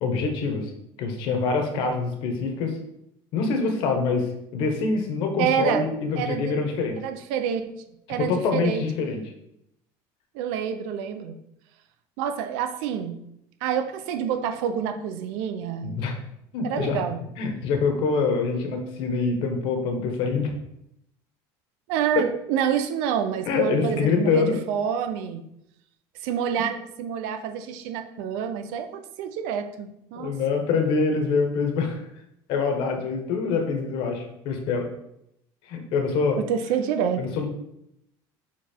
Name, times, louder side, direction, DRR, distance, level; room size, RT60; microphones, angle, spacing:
voice 1, 0.0-0.7 1.0-2.8 3.3-7.0 8.2-9.2 15.8-16.1 16.5-17.0 17.4-20.5 22.1-22.2 23.4-24.6 30.1-32.0 32.5-34.9 35.7-36.4 37.2-37.5, left 4 dB, 60° left, 4 dB, 1.5 m, -25 dB
voice 2, 5.4-5.9 6.2-6.5 7.0-7.7 8.1-8.8 10.3-11.3 12.2-13.2 13.6-16.0 16.6-17.2 21.9-25.5 26.2-30.3 36.4-37.2, right 8 dB, 80° right, 8 dB, 0.8 m, -27 dB
6.9 x 4.1 x 4.6 m, 0.79 s
cardioid pair, 155°, 9 cm